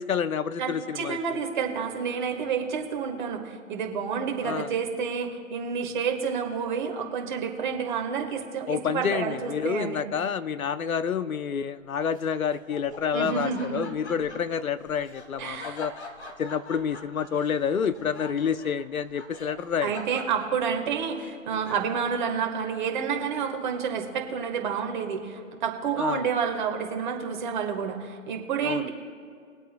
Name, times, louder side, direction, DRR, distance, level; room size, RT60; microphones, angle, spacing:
voice 1, 0.0-1.4 4.4-4.7 8.7-15.9 16.4-19.9 26.0-26.3 28.6-28.9, left 7 dB, 85° left, 14 dB, 0.7 m, -28 dB
voice 2, 0.6-10.0 13.1-13.9 15.4-15.8 19.8-28.9, right 6 dB, 35° right, 3 dB, 1.5 m, -29 dB
Laughter, 12.1-22.1, left 3 dB, 55° left, 1.6 m, -45 dB
22.5 x 8.2 x 2.2 m, 2.2 s
hypercardioid pair, 150°, 41 cm